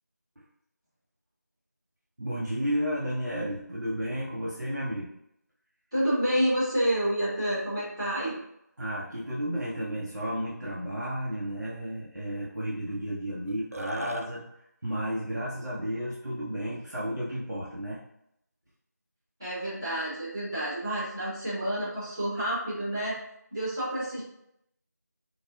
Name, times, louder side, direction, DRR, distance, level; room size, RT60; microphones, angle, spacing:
voice 1, 2.2-5.1 8.8-14.4 14.8-18.0, equal, 70° right, -7 dB, 0.9 m, -32 dB
voice 2, 5.9-8.4 19.4-23.2 23.5-24.2, right 1 dB, 10° right, -18 dB, 1.0 m, -29 dB
Burping eructation, 13.5-14.3, right 2 dB, 55° right, 0.4 m, -37 dB
4.1 x 2.4 x 2.2 m, 0.79 s
figure-of-eight pair, 175°, 10 cm